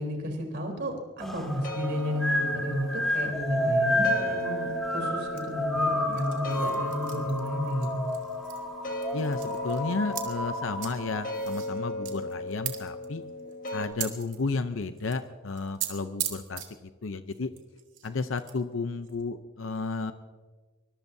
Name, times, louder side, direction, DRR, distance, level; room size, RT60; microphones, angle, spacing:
voice 1, 0.0-8.0, equal, 60° right, 2 dB, 3.8 m, -32 dB
sound 1, 1.2-11.3, left 1 dB, ahead, 2.1 m, -31 dB
sound 2, 1.4-13.8, left 1 dB, 45° left, 1.6 m, -37 dB
sound 3, 5.4-8.7 8.9-10.2 10.7-10.9 11.3-15.3 15.6-15.9 16.2-16.7 17.3-18.5 19.0-19.2, right 12 dB, 80° right, 2.4 m, -39 dB
voice 2, 9.1-13.2 13.7-17.5 18.0-20.1, left 3 dB, 85° left, 9 dB, 0.7 m, -32 dB
24.0 x 21.5 x 2.8 m, 1.3 s
head